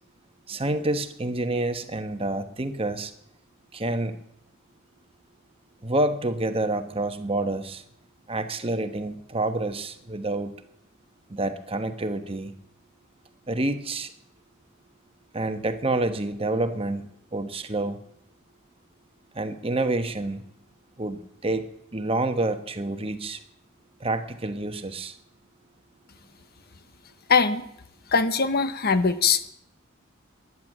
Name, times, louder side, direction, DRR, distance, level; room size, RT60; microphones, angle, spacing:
voice 1, 0.5-3.1 3.7-4.2 5.8-7.8 8.3-10.5 11.3-12.5 13.5-14.1 15.3-18.0 19.3-20.4 21.0-23.4 24.0-25.2, right 2 dB, 25° right, 9 dB, 1.1 m, -28 dB
voice 2, 27.3-27.6 28.1-29.5, left 5 dB, 50° left, 11 dB, 1.0 m, -21 dB
14.5 x 11.0 x 8.8 m, 0.75 s
head